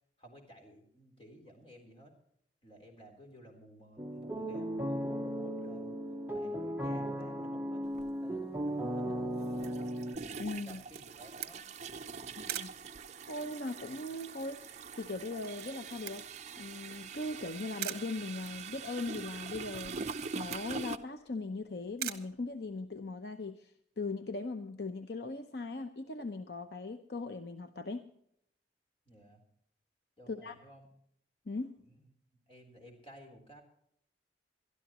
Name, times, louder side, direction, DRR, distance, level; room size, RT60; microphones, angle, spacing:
voice 1, 0.2-2.1 2.6-6.0 6.3-9.7 10.3-11.7 12.0-12.4 29.1-29.4 30.2-30.9 31.8-32.1 32.5-33.6, right 1 dB, 30° left, 3 dB, 3.7 m, -55 dB
sound 1, 4.0-10.1, equal, 10° right, 0.9 m, -36 dB
sound 2, 7.9-8.1 9.4-21.0, right 5 dB, 40° right, 0.7 m, -44 dB
voice 2, 10.4-10.8 12.4-12.7 13.3-16.2 16.6-20.0 20.3-28.0 30.3-30.6 31.5-31.8, left 3 dB, 65° left, 8 dB, 0.8 m, -39 dB
Camera, 10.7-23.1, right 11 dB, 60° right, 1.2 m, -46 dB
23.0 x 12.5 x 3.0 m, 0.70 s
head